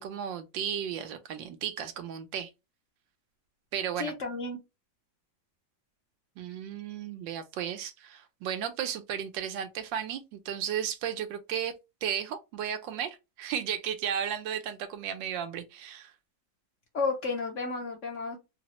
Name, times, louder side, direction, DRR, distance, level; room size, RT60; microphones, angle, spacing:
voice 1, 0.0-2.5 3.7-4.1 6.4-11.7 12.0-16.1, right 9 dB, 80° right, 1.4 m, -34 dB
voice 2, 4.0-4.6 16.9-18.4, left 4 dB, 55° left, 0.8 m, -32 dB
4.0 x 2.0 x 2.9 m
omnidirectional pair, 2.0 m